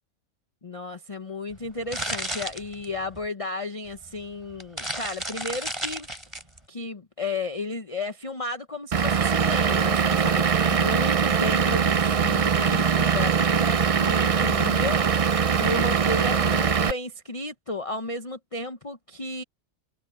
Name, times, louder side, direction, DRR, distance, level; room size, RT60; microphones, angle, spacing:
voice 1, 0.6-6.1 6.7-19.4, left 2 dB, 30° left, 0.9 m, -33 dB
sound 1, 1.5-3.3 4.0-4.1 4.5-6.6, right 1 dB, 20° right, 3.9 m, -33 dB
Vehicle / Engine, 8.9-16.9, right 6 dB, 55° right, 0.3 m, -22 dB
omnidirectional pair, 1.4 m